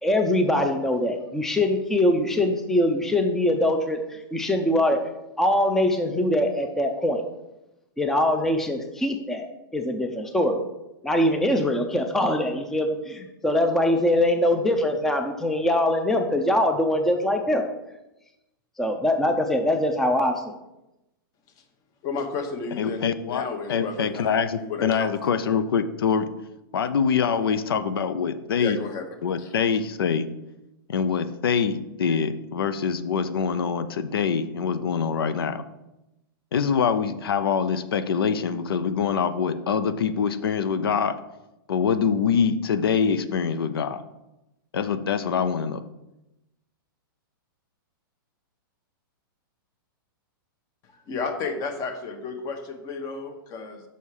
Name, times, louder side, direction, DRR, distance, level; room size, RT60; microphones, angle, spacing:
voice 1, 0.0-5.0 5.4-7.2 8.0-9.5 9.7-10.6 11.0-17.6 18.8-20.5, left 1 dB, 5° left, 5 dB, 0.5 m, -23 dB
voice 2, 22.0-25.3 28.6-29.0 29.4-29.8 51.1-53.8, left 4 dB, 30° left, 7 dB, 1.0 m, -33 dB
voice 3, 22.8-26.3 26.7-28.8 29.2-30.3 30.9-35.6 36.5-41.2 41.7-44.0 44.7-45.8, left 6 dB, 85° left, 11 dB, 0.5 m, -24 dB
5.6 x 5.4 x 4.8 m, 0.93 s
hypercardioid pair, 140°, 12 cm